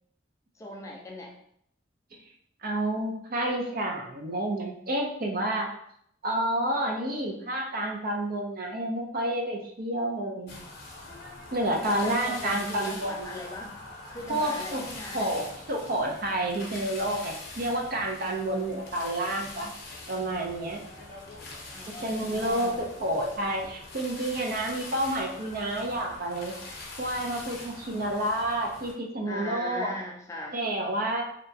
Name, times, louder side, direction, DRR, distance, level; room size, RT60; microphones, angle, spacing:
voice 1, 0.5-1.4 11.8-13.8 14.1-15.3 21.7-22.8 29.3-30.6, left 1 dB, 15° left, -1 dB, 0.3 m, -40 dB
voice 2, 2.6-5.7 6.2-10.6 11.5-13.3 14.3-14.8 15.1-19.7 20.1-20.8 22.0-26.5 27.0-29.9 30.5-31.2, right 1 dB, 50° right, 1 dB, 0.5 m, -29 dB
sound 1, 10.5-28.9, left 2 dB, 55° left, 0.7 m, -43 dB
2.8 x 2.2 x 2.7 m, 0.71 s
head